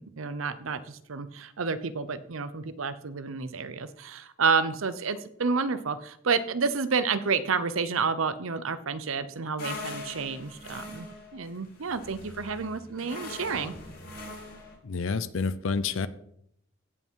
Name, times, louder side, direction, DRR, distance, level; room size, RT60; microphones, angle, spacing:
voice 1, 0.0-11.1 11.3-13.7, right 5 dB, 85° right, 13 dB, 0.8 m, -30 dB
sound 1, 9.6-14.7, left 2 dB, 50° left, 3.8 m, -42 dB
voice 2, 14.8-16.1, left 4 dB, 75° left, 15 dB, 0.6 m, -29 dB
16.0 x 5.8 x 4.6 m, 0.71 s
head